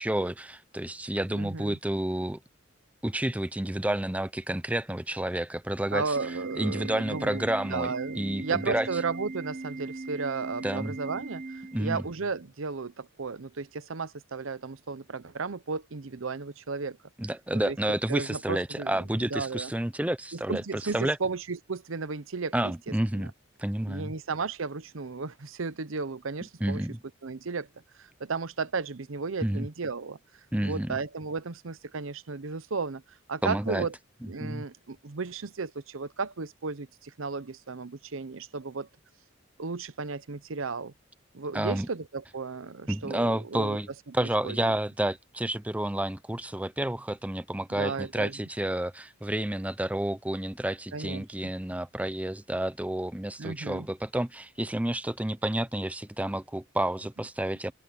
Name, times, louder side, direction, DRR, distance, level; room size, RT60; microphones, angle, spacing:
voice 1, 0.0-2.4 3.0-6.2 6.6-8.9 10.6-11.0 11.7-12.0 17.2-21.2 22.5-23.3 23.6-24.1 26.6-27.0 29.4-29.7 30.5-31.0 33.4-33.9 34.2-34.6 41.5-41.9 42.9-43.9 44.1-57.7, right 1 dB, 5° right, 0.7 m, -30 dB
voice 2, 1.3-1.8 5.9-7.4 7.7-17.0 17.5-17.8 18.1-19.7 20.3-22.7 23.1-23.3 23.9-26.8 27.2-27.7 28.0-30.2 30.6-33.0 33.3-33.9 34.3-38.9 39.6-40.9 41.3-43.8 44.2-44.7 47.7-48.3 50.9-51.5 53.4-53.9, right 4 dB, 75° right, 0.8 m, -34 dB
Organ, 6.2-12.2, right 2 dB, 40° right, 0.8 m, -39 dB
open air
head